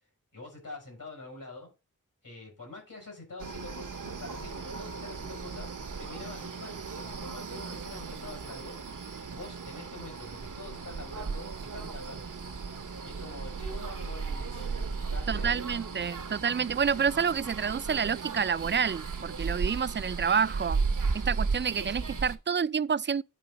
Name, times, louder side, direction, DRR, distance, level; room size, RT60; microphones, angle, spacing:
voice 1, 0.3-1.7 2.2-8.8 9.3-12.3 13.0-15.7, left 2 dB, 80° left, 5.8 m, -46 dB
sound 1, 3.4-22.4, right 4 dB, 75° right, 0.9 m, -35 dB
voice 2, 15.3-20.8 21.1-23.2, right 6 dB, 35° right, 0.4 m, -28 dB
10.5 x 3.7 x 5.4 m
wide cardioid pair, 40°, 32 cm